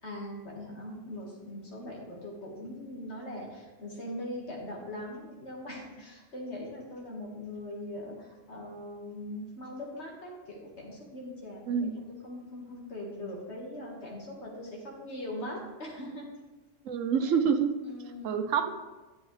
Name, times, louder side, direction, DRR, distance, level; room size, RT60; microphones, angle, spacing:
voice 1, 0.0-16.3 17.2-17.3 17.8-18.5, left 1 dB, 60° left, -2 dB, 2.0 m, -41 dB
voice 2, 16.8-17.7 18.2-18.7, right 7 dB, 80° right, 8 dB, 1.1 m, -27 dB
10.5 x 8.2 x 3.2 m, 1.2 s
omnidirectional pair, 1.3 m